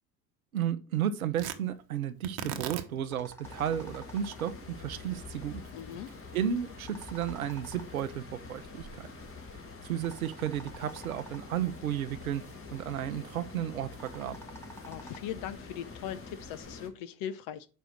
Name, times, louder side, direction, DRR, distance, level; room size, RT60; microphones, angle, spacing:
voice 1, 0.5-5.6 6.3-9.1 9.8-12.4 12.7-14.4, right 10 dB, 90° right, 0.6 m, -33 dB
Tearing, 1.3-9.7, right 9 dB, 60° right, 1.0 m, -45 dB
sound 1, 2.9-15.6, equal, 5° left, 1.4 m, -52 dB
sound 2, 3.4-16.9, left 4 dB, 30° left, 1.8 m, -47 dB
voice 2, 5.7-6.1 14.9-17.7, left 10 dB, 55° left, 0.6 m, -39 dB
5.5 x 5.2 x 6.2 m
hypercardioid pair, 60°, 41 cm